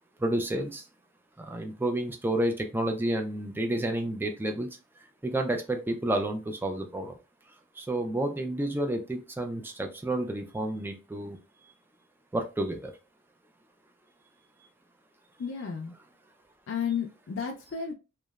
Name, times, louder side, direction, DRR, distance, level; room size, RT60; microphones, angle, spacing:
voice 1, 0.2-0.9 1.4-4.7 5.2-7.1 7.8-11.4 12.3-12.9, right 1 dB, 10° right, 4 dB, 0.3 m, -30 dB
voice 2, 15.4-15.9 16.7-17.9, left 7 dB, 65° left, 1 dB, 0.4 m, -32 dB
3.0 x 2.0 x 2.2 m, 0.30 s
head